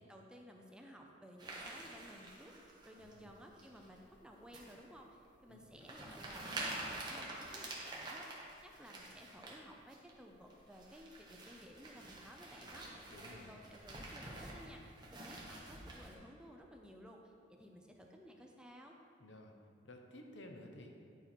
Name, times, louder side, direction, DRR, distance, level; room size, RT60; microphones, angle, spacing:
voice 1, 0.0-2.6 2.8-19.0, equal, 5° right, 1 dB, 0.5 m, -56 dB
sound 1, 1.4-3.1 3.6-4.0 4.5-4.8 5.2-5.3 5.8-9.6 9.9-10.1 10.5-16.1, right 2 dB, 25° right, 1.1 m, -47 dB
voice 2, 3.0-3.3 5.5-5.7 13.1-13.6 19.2-19.5 19.8-20.9, left 1 dB, 80° left, 3 dB, 0.8 m, -54 dB
10.5 x 4.4 x 4.4 m, 2.5 s
head